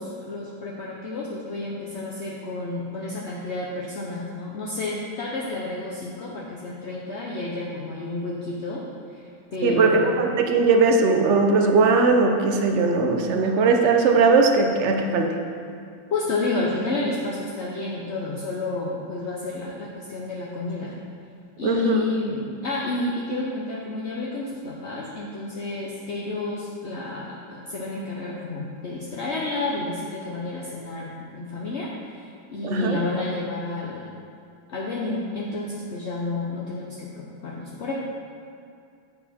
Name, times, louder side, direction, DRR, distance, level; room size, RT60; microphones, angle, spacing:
voice 1, 0.0-8.8 9.1-9.2 9.5-10.2 16.1-21.0 21.6-34.1 34.7-37.9, left 2 dB, 50° left, -4 dB, 0.9 m, -30 dB
voice 2, 9.6-15.4 21.6-22.1 32.6-33.0, right 4 dB, 70° right, 3 dB, 0.6 m, -19 dB
10.5 x 7.4 x 4.2 m, 2.4 s
omnidirectional pair, 2.2 m